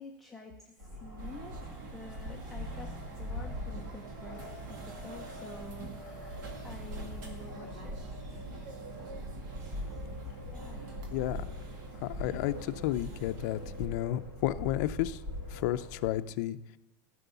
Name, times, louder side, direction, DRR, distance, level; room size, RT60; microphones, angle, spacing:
voice 1, 0.0-2.9 3.2-8.0 8.3-8.4 9.7-11.0, left 3 dB, ahead, -3 dB, 0.7 m, -49 dB
sound 1, 0.8-16.1, left 1 dB, 40° right, 5.2 m, -43 dB
sound 2, 1.2-13.9, right 4 dB, 65° right, 2.2 m, -46 dB
voice 2, 11.1-11.4 12.0-15.2 15.5-16.6, left 14 dB, 55° left, 9 dB, 0.5 m, -32 dB
14.5 x 6.2 x 6.9 m, 0.95 s
supercardioid pair, 175°, 11 cm